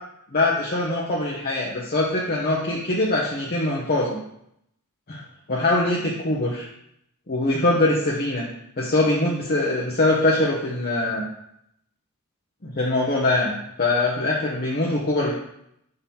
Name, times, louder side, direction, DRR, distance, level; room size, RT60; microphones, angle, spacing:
voice 1, 0.3-4.2 5.1-5.2 5.5-6.7 7.3-8.5 8.8-11.2 12.6-15.3, left 2 dB, 45° left, -4 dB, 0.9 m, -23 dB
4.3 x 3.9 x 5.6 m, 0.75 s
head